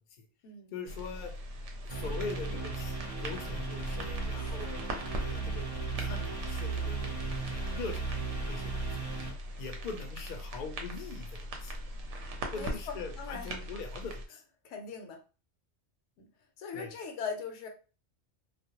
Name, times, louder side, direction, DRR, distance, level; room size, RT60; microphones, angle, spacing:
voice 1, 0.7-1.3 1.8-4.8 5.1-5.6 6.0-8.1 8.5-9.0 9.6-11.7 12.5-14.4 16.7-16.9, left 4 dB, 55° left, 4 dB, 0.6 m, -42 dB
sound 1, 0.9-14.3, equal, 75° right, 0.9 m, -41 dB
sound 2, 1.9-9.3, right 3 dB, 45° right, 0.5 m, -36 dB
voice 2, 4.3-4.7 12.5-13.6 14.6-15.2 16.2-16.3 16.6-17.7, left 5 dB, 75° left, 4 dB, 0.9 m, -40 dB
2.3 x 2.0 x 2.8 m, 0.34 s
omnidirectional pair, 1.3 m